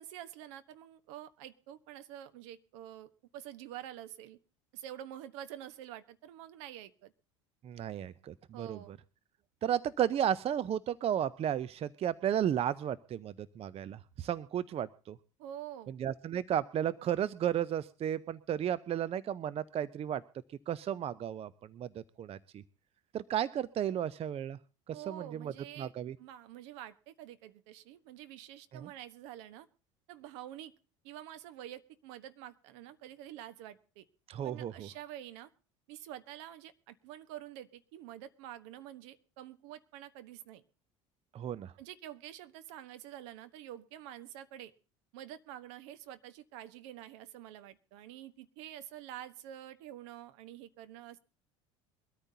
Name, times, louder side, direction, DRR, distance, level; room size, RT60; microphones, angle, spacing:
voice 1, 0.0-4.4 4.7-7.1 8.5-8.9 15.4-15.9 24.9-25.9 26.2-29.7 30.1-30.7 31.0-34.1 34.4-35.5 35.9-40.6 41.8-44.7 45.1-51.2, right 12 dB, 70° right, 11 dB, 1.2 m, -47 dB
voice 2, 7.6-9.0 9.6-15.2 16.0-20.2 20.7-21.9 22.2-22.6 23.1-24.6 24.9-26.1 28.7-28.9 34.3-34.9 41.3-41.7, right 10 dB, 40° right, 16 dB, 0.6 m, -34 dB
22.5 x 13.5 x 2.8 m, 0.35 s
hypercardioid pair, 75°, 16 cm